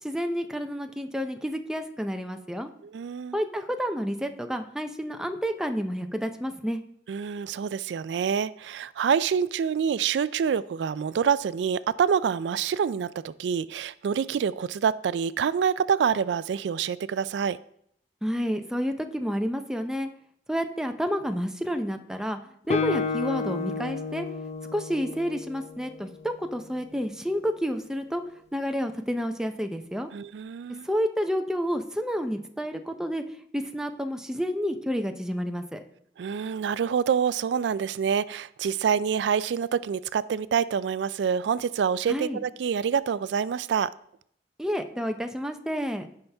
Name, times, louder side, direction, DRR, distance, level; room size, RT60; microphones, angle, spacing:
voice 1, 0.0-2.7 3.3-6.8 18.2-20.1 20.5-22.4 22.7-24.3 24.7-28.2 28.5-30.1 30.8-33.2 33.5-35.8 42.1-42.4 44.6-46.1, equal, 5° right, 0.6 m, -30 dB
voice 2, 2.9-3.4 7.1-17.6 30.1-30.9 36.2-43.9, right 7 dB, 90° right, 0.3 m, -26 dB
Guitar, 22.7-26.4, left 5 dB, 40° left, 0.4 m, -31 dB
15.0 x 5.7 x 3.4 m
head